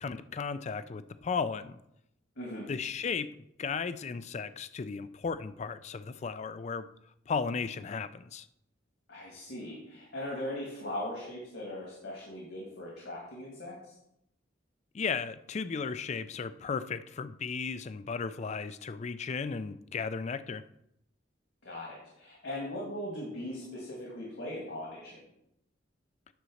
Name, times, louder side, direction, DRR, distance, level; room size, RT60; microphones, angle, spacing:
voice 1, 0.0-1.8 2.7-6.9 7.3-8.5 14.9-20.6, left 5 dB, 35° left, 0.4 m, -35 dB
voice 2, 2.4-2.7 9.1-13.9 21.6-25.3, left 1 dB, 70° left, 2.2 m, -39 dB
9.4 x 4.1 x 6.3 m
head